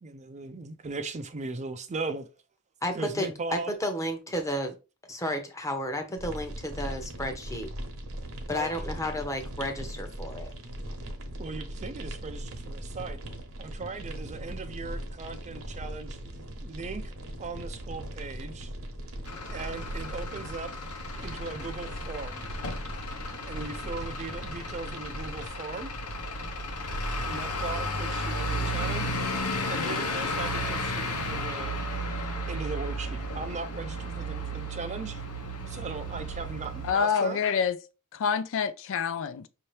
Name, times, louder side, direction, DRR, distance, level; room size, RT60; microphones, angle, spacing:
voice 1, 0.0-2.3 2.9-3.7 8.5-9.0 11.4-13.2 13.6-16.2 16.6-18.7 19.5-20.7 21.2-22.4 23.4-25.9 27.2-29.1 29.6-31.8 32.5-35.2 35.7-37.4, right 3 dB, 30° right, 0.4 m, -38 dB
voice 2, 2.8-4.7 5.1-7.7 8.5-10.5, left 1 dB, 15° left, 0.9 m, -32 dB
sound 1, 6.2-25.5, right 1 dB, 65° right, 1.0 m, -39 dB
Truck / Idling, 19.2-36.9, equal, 85° left, 1.0 m, -33 dB
voice 3, 36.8-37.8 38.1-39.5, left 6 dB, 60° left, 0.4 m, -27 dB
5.6 x 2.8 x 3.2 m
head